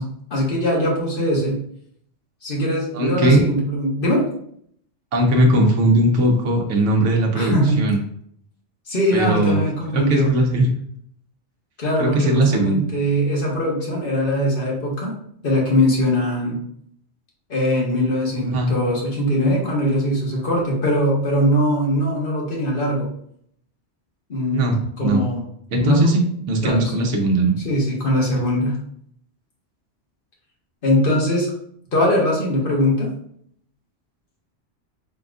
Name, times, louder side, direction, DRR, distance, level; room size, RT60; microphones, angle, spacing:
voice 1, 0.0-1.6 2.4-4.2 7.3-7.8 8.9-10.3 11.8-15.2 15.4-16.6 17.5-23.1 24.3-25.4 25.8-26.1 26.6-27.0 27.6-28.8 30.8-31.5 31.9-33.1, equal, 50° left, -3 dB, 1.3 m, -21 dB
voice 2, 2.9-3.4 5.1-8.0 9.1-9.6 9.9-10.7 12.0-12.8 18.5-18.7 24.5-25.2 25.7-27.6, right 1 dB, 85° right, 1 dB, 1.1 m, -19 dB
4.1 x 3.7 x 2.4 m, 0.67 s
omnidirectional pair, 1.2 m